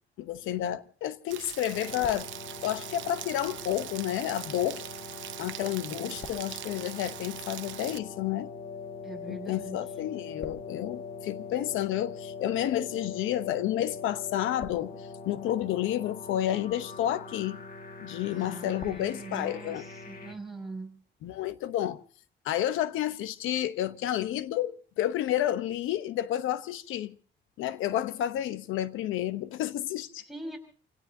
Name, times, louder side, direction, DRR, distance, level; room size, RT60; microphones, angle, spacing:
voice 1, 0.2-2.3 2.6-4.8 5.4-8.5 9.3-17.6 18.0-19.8 21.2-22.0 22.4-27.2 27.6-30.2, left 12 dB, 90° left, 0.9 m, -30 dB
Rain, 1.3-8.0, right 13 dB, 75° right, 0.8 m, -42 dB
sound 1, 1.7-20.3, left 4 dB, 45° left, 1.7 m, -42 dB
voice 2, 5.9-6.2 9.0-9.9 18.2-21.0 30.2-30.6, right 2 dB, ahead, 5.7 m, -42 dB
29.5 x 17.0 x 2.7 m
cardioid pair, 90°, 20 cm